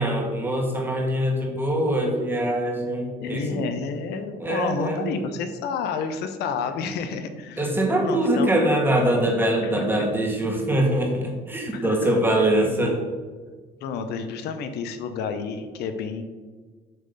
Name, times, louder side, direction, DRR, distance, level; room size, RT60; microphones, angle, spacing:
voice 1, 0.0-3.6 4.4-5.0 7.6-13.0, right 1 dB, 10° right, 1 dB, 1.6 m, -23 dB
voice 2, 3.2-7.7 8.0-8.5 9.6-10.0 11.7-12.1 12.6-12.8 13.8-16.2, left 5 dB, 80° left, 8 dB, 0.6 m, -30 dB
7.7 x 3.2 x 5.3 m, 1.4 s
cardioid pair, 110°, 17 cm